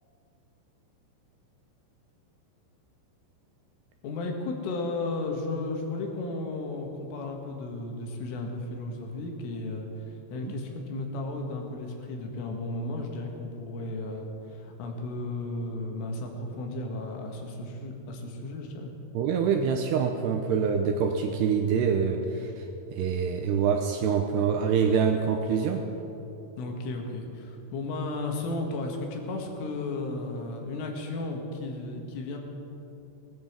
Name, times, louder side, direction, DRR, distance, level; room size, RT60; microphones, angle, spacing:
voice 1, 4.0-18.9 26.6-32.4, left 2 dB, 85° left, 2 dB, 4.4 m, -34 dB
voice 2, 19.1-22.7 22.9-25.8, right 6 dB, 80° right, 4 dB, 2.5 m, -25 dB
19.0 x 10.5 x 7.4 m, 2.9 s
omnidirectional pair, 5.6 m